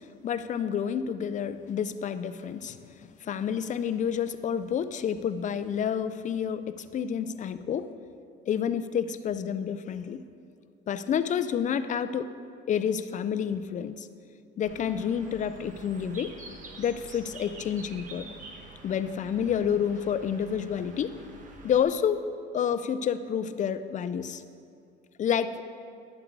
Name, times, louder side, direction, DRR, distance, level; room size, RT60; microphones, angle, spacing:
voice 1, 0.2-7.9 8.5-10.2 10.9-12.3 12.7-14.1 14.6-16.3 16.8-18.3 18.8-21.1 21.6-22.2 22.5-24.4 25.2-25.6, left 8 dB, 40° left, 12 dB, 0.4 m, -29 dB
Bird, 14.6-21.8, right 3 dB, 40° right, 1.1 m, -47 dB
11.5 x 7.5 x 4.7 m, 2.4 s
cardioid pair, 135°, 21 cm